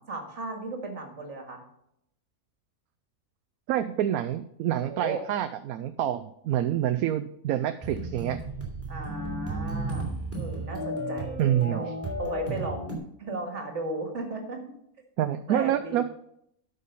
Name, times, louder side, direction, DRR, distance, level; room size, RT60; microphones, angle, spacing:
voice 1, 0.1-1.6 4.9-5.2 8.9-11.4 11.7-11.9 12.2-12.9 13.2-14.6 15.5-16.0, right 2 dB, 55° right, 3 dB, 2.2 m, -35 dB
voice 2, 3.7-8.4 11.4-11.8 15.2-16.0, right 11 dB, 80° right, 11 dB, 1.0 m, -27 dB
sound 1, 7.8-13.0, right 1 dB, 10° right, 3.1 m, -33 dB
12.5 x 5.4 x 5.4 m, 0.75 s
omnidirectional pair, 1.5 m